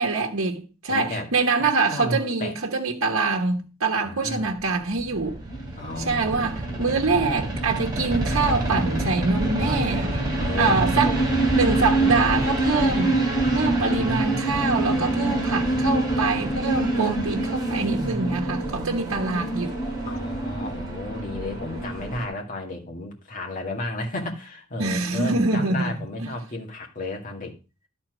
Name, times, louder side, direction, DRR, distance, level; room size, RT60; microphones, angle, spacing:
voice 1, 0.0-5.4 6.0-10.2 10.6-11.1 11.5-13.2 13.5-19.8 24.8-25.9 26.2-26.3, right 3 dB, 75° right, 1.3 m, -25 dB
voice 2, 0.9-1.3 1.6-2.5 4.0-4.5 5.8-7.3 8.0-8.6 10.4-11.2 11.7-12.0 13.4-14.2 17.1-17.5 20.1-27.5, left 1 dB, 40° left, 2.1 m, -33 dB
sound 1, 4.6-22.3, right 2 dB, 20° right, 3.2 m, -26 dB
11.5 x 4.4 x 6.1 m
head